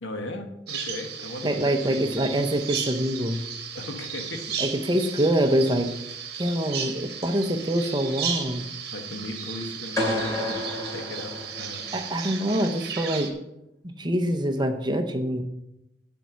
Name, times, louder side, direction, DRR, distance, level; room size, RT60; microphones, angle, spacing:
voice 1, 0.0-2.3 3.7-4.5 8.9-10.6 10.9-11.8, left 2 dB, 90° left, 5 dB, 1.3 m, -37 dB
Bird vocalization bird call bird song, 0.7-13.3, right 7 dB, 55° right, 1.2 m, -35 dB
voice 2, 1.4-3.4 4.6-5.9 6.4-8.7 11.9-13.3 13.8-15.4, right 1 dB, 25° right, 6 dB, 0.7 m, -25 dB
sound 1, 10.0-12.1, left 1 dB, 20° left, 2.5 m, -30 dB
9.0 x 4.5 x 6.8 m, 0.87 s
head